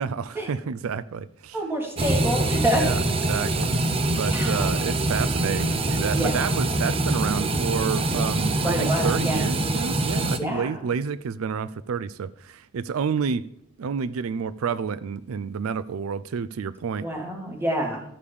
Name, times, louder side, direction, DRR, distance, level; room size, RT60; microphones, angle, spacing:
voice 1, 0.0-1.6 2.8-3.0 3.3-13.5 13.8-17.1, right 6 dB, 90° right, 17 dB, 0.4 m, -29 dB
voice 2, 1.5-2.8 4.3-4.7 6.1-6.5 8.6-9.4 10.4-10.8 17.0-18.0, equal, 10° right, 1 dB, 1.9 m, -27 dB
sound 1, 2.0-10.4, right 2 dB, 25° right, 0.6 m, -24 dB
13.0 x 5.0 x 7.0 m, 0.74 s
head